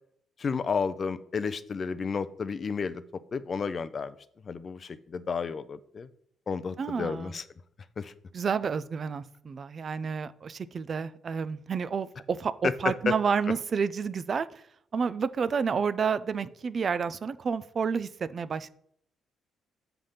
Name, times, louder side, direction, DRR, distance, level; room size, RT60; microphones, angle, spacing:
voice 1, 0.4-3.0 3.3-4.2 4.4-6.1 6.5-7.5 8.0-8.1 12.6-13.1, left 5 dB, 45° left, 14 dB, 0.5 m, -31 dB
voice 2, 6.8-7.3 8.3-14.6 14.9-18.7, right 6 dB, 45° right, 15 dB, 0.4 m, -30 dB
7.5 x 3.4 x 5.6 m, 0.68 s
cardioid pair, 90°, 0 cm